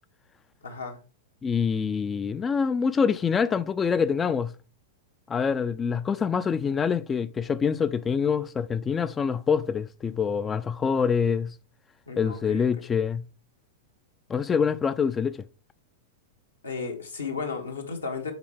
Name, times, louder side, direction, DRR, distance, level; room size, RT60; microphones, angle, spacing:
voice 1, 0.6-1.0 12.1-12.6 16.6-18.3, left 4 dB, 80° left, 1.5 m, -34 dB
voice 2, 1.4-4.5 5.3-11.6 12.2-13.3 14.3-15.4, left 6 dB, 20° left, 0.3 m, -25 dB
8.0 x 4.4 x 3.4 m
figure-of-eight pair, 100°, 0 cm